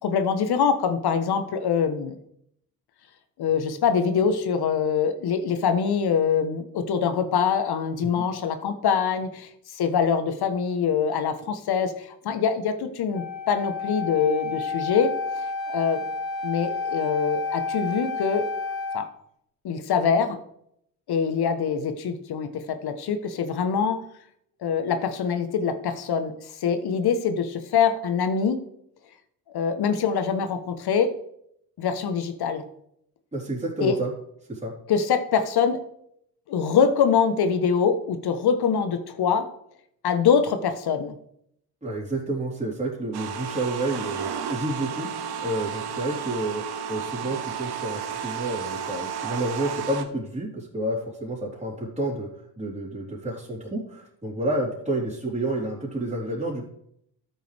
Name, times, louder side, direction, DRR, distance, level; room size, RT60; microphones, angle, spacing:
voice 1, 0.0-2.2 3.4-15.1 15.7-16.0 16.4-18.5 18.9-19.1 19.6-20.4 21.1-24.0 24.6-26.3 26.6-28.6 29.5-31.1 31.8-32.6 33.8-34.0 34.9-35.8 36.5-39.4 40.0-41.1, left 6 dB, 55° left, 9 dB, 1.2 m, -24 dB
Wind instrument woodwind instrument, 13.1-19.1, left 4 dB, 70° left, 1.9 m, -30 dB
voice 2, 33.3-34.1 34.5-34.7 41.8-56.7, right 1 dB, 15° right, -5 dB, 3.8 m, -30 dB
sound 1, 43.1-50.0, right 7 dB, 55° right, 1.3 m, -32 dB
12.5 x 6.5 x 3.5 m, 0.73 s
hypercardioid pair, 50°, 47 cm